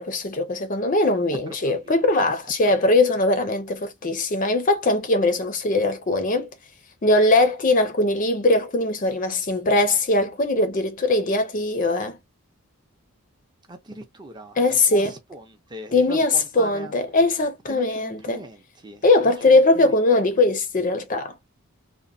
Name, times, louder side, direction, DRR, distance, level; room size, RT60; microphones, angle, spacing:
voice 1, 0.0-6.5 7.0-12.2 14.6-15.1 15.9-18.4 19.0-21.3, left 2 dB, 35° left, 0.5 m, -20 dB
voice 2, 1.5-2.0 13.7-16.9 17.7-19.1 19.4-20.0, right 1 dB, 20° right, 0.5 m, -41 dB
2.9 x 2.1 x 2.6 m
head